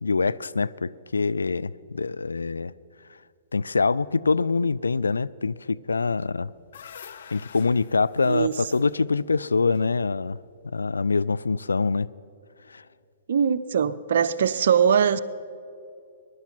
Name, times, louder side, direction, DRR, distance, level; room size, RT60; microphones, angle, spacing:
voice 1, 0.0-2.7 3.5-6.5 7.3-10.4 10.7-12.1 12.7-12.8, left 4 dB, 75° left, 16 dB, 0.3 m, -24 dB
sound 1, 6.2-10.5, left 7 dB, 55° left, 0.8 m, -48 dB
voice 2, 8.2-8.8 13.3-15.2, right 7 dB, 55° right, 14 dB, 0.6 m, -22 dB
22.0 x 11.0 x 4.5 m, 2.6 s
figure-of-eight pair, 115°, 0 cm